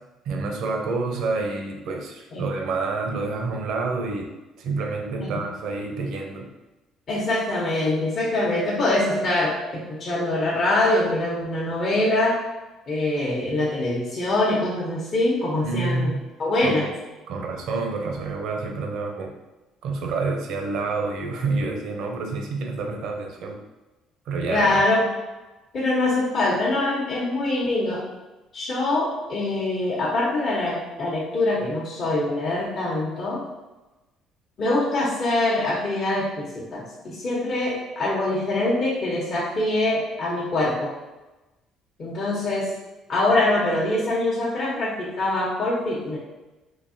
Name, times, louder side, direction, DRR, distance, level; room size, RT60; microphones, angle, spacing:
voice 1, 0.3-4.3 4.6-6.5 15.6-16.2 16.6-16.8 17.3-19.3 19.8-23.6 24.3-24.8, right 3 dB, 70° right, 3 dB, 0.6 m, -28 dB
voice 2, 7.1-12.4 12.9-16.1 16.4-16.9 24.5-25.0 25.7-28.1 28.5-33.4 34.6-40.9 42.0-42.7 43.1-46.2, left 2 dB, 50° left, -6 dB, 0.9 m, -24 dB
3.9 x 2.7 x 2.6 m, 1.1 s
cardioid pair, 95°, 0 cm